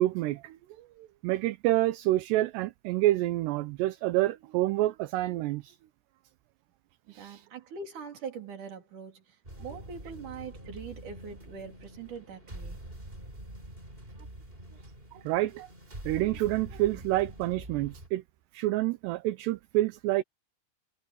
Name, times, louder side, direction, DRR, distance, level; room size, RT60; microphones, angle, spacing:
voice 1, 0.0-5.8 7.1-7.4 15.2-15.7 16.1-18.2 18.5-20.2, right 16 dB, 80° right, 2.9 m, -28 dB
voice 2, 7.1-12.8, right 6 dB, 45° right, 4.9 m, -43 dB
sound 1, 9.4-18.1, right 1 dB, 10° right, 4.6 m, -45 dB
omnidirectional pair, 5.1 m